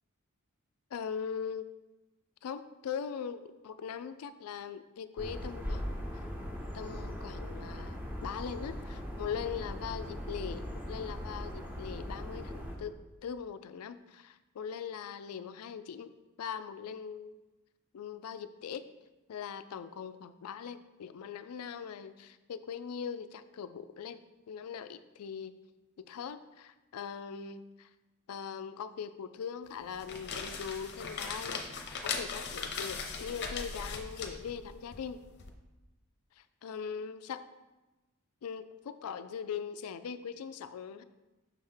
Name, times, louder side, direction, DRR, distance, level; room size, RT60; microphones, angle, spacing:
voice 1, 0.9-1.7 2.4-6.3 6.7-12.9 13.2-16.1 16.4-17.4 17.9-18.9 19.3-25.5 26.0-27.9 28.3-35.2 36.4-37.4 38.4-41.0, left 7 dB, 90° left, 12 dB, 0.4 m, -41 dB
sound 1, 5.2-12.8, equal, 10° right, 0.9 m, -39 dB
sound 2, 29.8-35.5, left 5 dB, 50° left, 0.7 m, -39 dB
6.3 x 3.4 x 5.5 m, 1.1 s
head